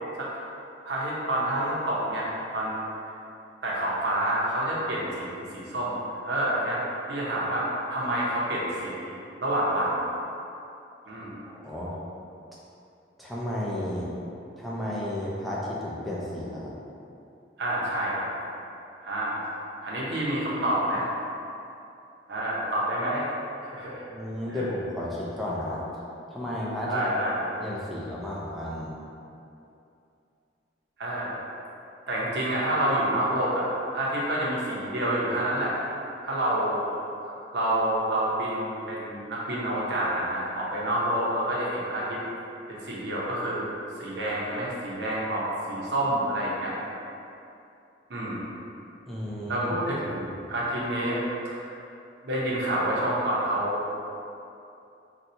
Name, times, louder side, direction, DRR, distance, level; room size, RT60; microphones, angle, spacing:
voice 1, 0.2-0.5 0.8-2.3 2.5-2.8 3.6-6.0 6.2-6.8 7.1-9.1 9.4-10.0 11.1-11.4 17.6-18.2 19.0-19.5 19.8-21.1 22.3-23.3 23.7-24.0 24.5-24.6 26.9-27.6 31.0-31.4 32.1-33.7 33.9-35.7 36.2-36.8 37.2-42.2 42.7-43.7 44.0-46.7 48.1-48.6 49.5-51.2 51.4-51.7 52.2-53.8, right 1 dB, 70° right, -6 dB, 0.7 m, -28 dB
voice 2, 11.1-12.0 13.2-14.1 14.6-16.7 24.1-25.8 26.3-27.0 27.6-28.9 49.1-49.9, left 1 dB, ahead, -7 dB, 0.4 m, -33 dB
4.2 x 2.3 x 2.6 m, 2.7 s
head